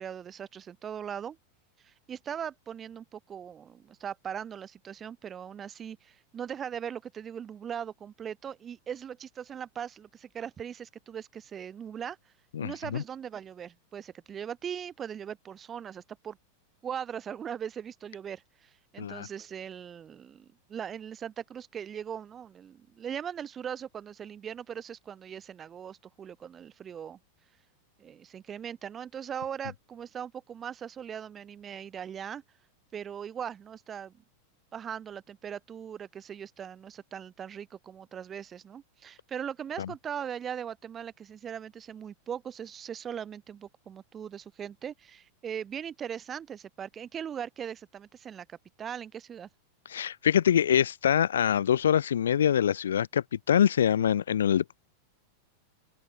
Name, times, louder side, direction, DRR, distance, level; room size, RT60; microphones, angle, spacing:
voice 1, 0.0-1.4 1.8-12.2 12.6-16.4 16.8-27.2 28.0-32.4 32.9-34.1 34.7-49.5, right 8 dB, 25° right, 3.9 m, -39 dB
voice 2, 12.5-13.0 19.0-19.3 39.8-39.9 49.9-54.8, left 9 dB, 65° left, 0.4 m, -25 dB
open air
figure-of-eight pair, 90°, 0 cm